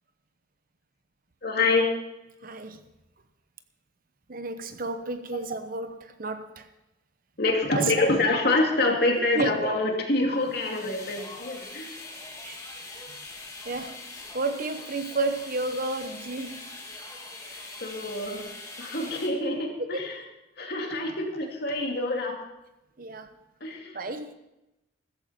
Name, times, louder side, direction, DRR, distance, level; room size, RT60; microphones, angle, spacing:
voice 1, 1.4-1.9 7.4-12.0 17.8-18.5 18.8-20.2 20.6-22.4 23.6-24.0, left 2 dB, 55° left, 1 dB, 2.5 m, -26 dB
voice 2, 2.4-2.8 4.3-6.7 7.7-8.2 9.2-9.5 12.4-12.6 13.6-14.0 14.3-16.7 19.8-20.1 23.0-23.3 23.9-24.3, right 3 dB, 45° right, 9 dB, 0.9 m, -31 dB
sound 1, 10.4-19.3, left 3 dB, 15° left, 2.0 m, -42 dB
15.5 x 14.0 x 4.3 m, 0.93 s
head